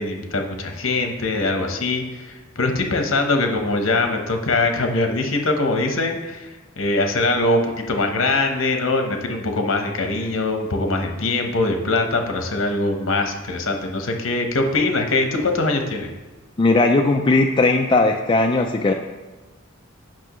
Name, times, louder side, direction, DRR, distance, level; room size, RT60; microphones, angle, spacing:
voice 1, 0.0-16.1, left 2 dB, 70° left, 4 dB, 1.0 m, -22 dB
voice 2, 16.6-18.9, left 2 dB, 25° left, 3 dB, 0.3 m, -17 dB
8.9 x 6.0 x 3.1 m, 1.2 s
head